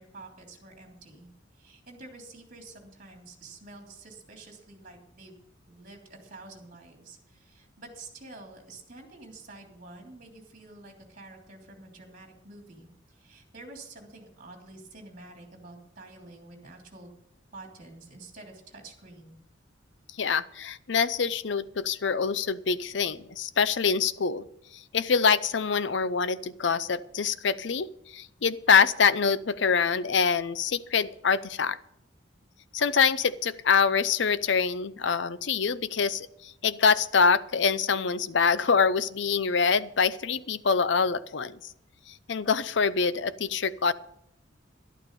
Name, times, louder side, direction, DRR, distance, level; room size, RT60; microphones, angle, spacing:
voice 1, 0.0-5.4 5.7-17.1 17.5-19.4, right 2 dB, 45° right, 2 dB, 3.1 m, -48 dB
voice 2, 20.2-24.5 24.9-31.8 32.7-41.6 42.3-43.9, left 5 dB, 65° left, 15 dB, 0.6 m, -25 dB
12.0 x 11.5 x 5.3 m, 0.77 s
head